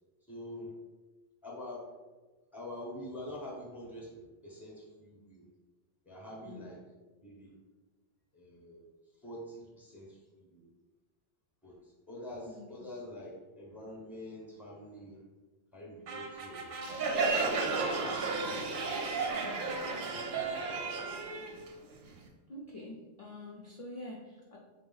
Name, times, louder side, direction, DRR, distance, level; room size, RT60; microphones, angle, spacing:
voice 1, 0.3-0.8 1.4-1.9 2.5-5.5 6.0-6.8 7.2-7.6 8.3-8.9 9.2-10.7 11.6-15.2 15.7-16.7 17.8-19.1 19.4-20.0 20.5-21.0, left 1 dB, ahead, -2 dB, 0.6 m, -46 dB
voice 2, 6.4-6.8 12.5-12.7 22.5-24.6, left 1 dB, 55° left, -3 dB, 0.4 m, -46 dB
sound 1, 16.1-21.6, right 3 dB, 85° right, 0.9 m, -43 dB
Crowd, 16.8-22.3, right 3 dB, 60° right, 0.6 m, -33 dB
3.9 x 2.1 x 3.9 m, 1.2 s
omnidirectional pair, 1.2 m